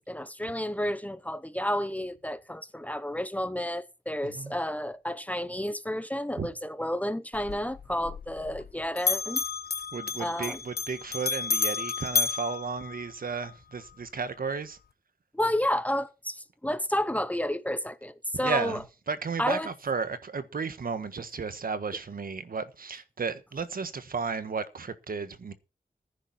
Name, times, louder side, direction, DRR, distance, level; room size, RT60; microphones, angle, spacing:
voice 1, 0.1-9.4 10.2-10.6 15.3-18.8 19.4-19.7, left 1 dB, 10° left, 0.9 m, -31 dB
voice 2, 4.2-4.5 6.4-6.5 9.9-14.8 18.4-25.5, right 5 dB, 70° right, 1.4 m, -33 dB
Bell, 7.3-8.7 9.0-13.5, left 5 dB, 85° left, 1.2 m, -31 dB
15.5 x 10.0 x 4.3 m
wide cardioid pair, 125°, 16 cm